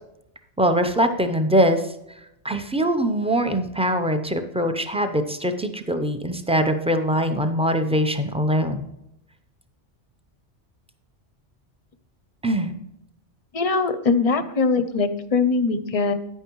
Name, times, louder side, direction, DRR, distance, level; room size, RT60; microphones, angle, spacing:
voice 1, 0.6-1.9 2.4-8.9 12.4-12.7, equal, 10° right, 7 dB, 0.4 m, -22 dB
voice 2, 13.5-16.1, left 4 dB, 40° left, 11 dB, 0.5 m, -21 dB
10.0 x 9.0 x 3.0 m, 0.83 s
omnidirectional pair, 1.2 m